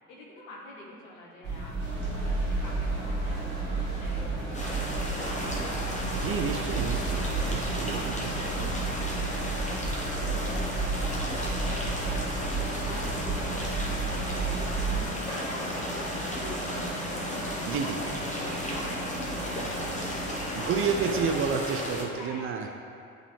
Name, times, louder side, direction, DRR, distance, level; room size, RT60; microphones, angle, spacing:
voice 1, 0.1-6.7 7.6-9.3 9.6-16.1 16.4-17.3 17.7-20.9 22.1-22.8, left 1 dB, 70° left, -3 dB, 1.4 m, -47 dB
sound 1, 1.4-15.0, right 3 dB, 75° right, 1.3 m, -32 dB
sound 2, 1.8-21.5, right 1 dB, 85° left, 1.2 m, -38 dB
sound 3, 4.5-22.0, equal, 15° left, 1.1 m, -35 dB
voice 2, 6.1-8.7 17.7-18.0 20.5-22.7, right 6 dB, 30° right, 4 dB, 0.4 m, -30 dB
10.5 x 3.6 x 3.3 m, 2.4 s
figure-of-eight pair, 60°, 43 cm